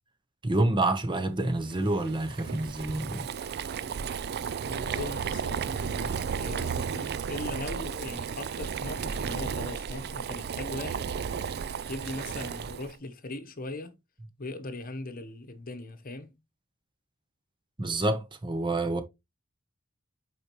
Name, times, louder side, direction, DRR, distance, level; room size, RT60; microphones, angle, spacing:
voice 1, 0.4-3.3 17.8-19.0, right 2 dB, 20° right, 0.9 m, -28 dB
Boiling, 1.7-13.0, right 6 dB, 50° right, 0.4 m, -34 dB
voice 2, 4.6-11.2 11.9-14.0 14.4-16.4, left 2 dB, 40° left, 1.0 m, -39 dB
8.6 x 4.8 x 3.0 m
head